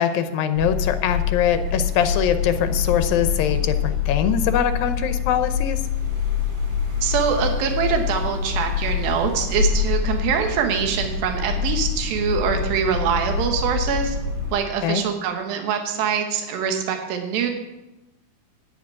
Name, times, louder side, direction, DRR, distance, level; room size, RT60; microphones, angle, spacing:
voice 1, 0.0-5.8 14.8-15.0, left 8 dB, 85° left, 10 dB, 2.6 m, -22 dB
sound 1, 0.6-14.6, left 6 dB, 35° right, 2.8 m, -25 dB
voice 2, 7.0-14.2 14.5-17.5, right 7 dB, 85° right, 4 dB, 3.0 m, -24 dB
12.0 x 5.8 x 8.6 m, 1.0 s
omnidirectional pair, 4.0 m